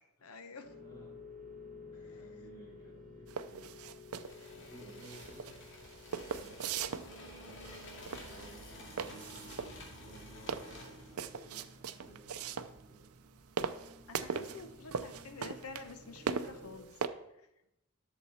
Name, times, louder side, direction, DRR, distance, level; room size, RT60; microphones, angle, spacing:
voice 1, 0.2-0.7 2.1-2.2 14.1-17.0, left 4 dB, 90° left, 8 dB, 1.0 m, -49 dB
sound 1, 0.6-16.8, left 2 dB, 40° right, 1.1 m, -54 dB
voice 2, 0.8-1.2 1.9-3.7 4.5-13.1 14.3-14.6, right 1 dB, 15° left, -7 dB, 4.4 m, -57 dB
sound 2, 3.3-17.1, right 6 dB, 85° right, 0.6 m, -40 dB
sound 3, 4.1-11.2, left 1 dB, 60° left, 2.3 m, -51 dB
11.0 x 6.8 x 4.3 m, 0.86 s
head